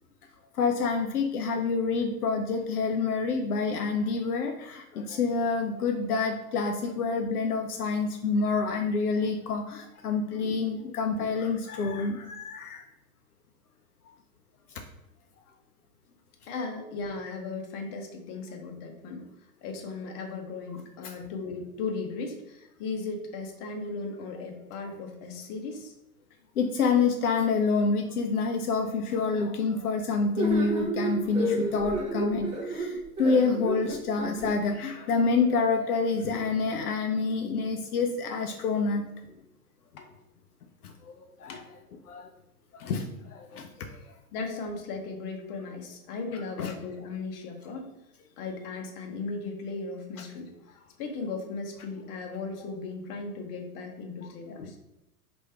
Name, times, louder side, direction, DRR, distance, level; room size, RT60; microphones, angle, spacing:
voice 1, 0.5-12.8 21.0-21.1 26.6-39.1 40.8-41.6 42.1-42.3 42.7-44.0 46.6-46.7 54.5-54.7, left 4 dB, 75° left, 4 dB, 0.6 m, -27 dB
voice 2, 16.5-19.3 19.6-25.9 40.0-40.1 41.5-41.6 44.3-47.9 48.4-54.8, left 4 dB, 40° left, 3 dB, 0.8 m, -37 dB
sound 1, 30.4-34.5, right 1 dB, 15° right, 0.6 m, -31 dB
3.1 x 2.6 x 4.3 m, 0.90 s
figure-of-eight pair, 105°, 45 cm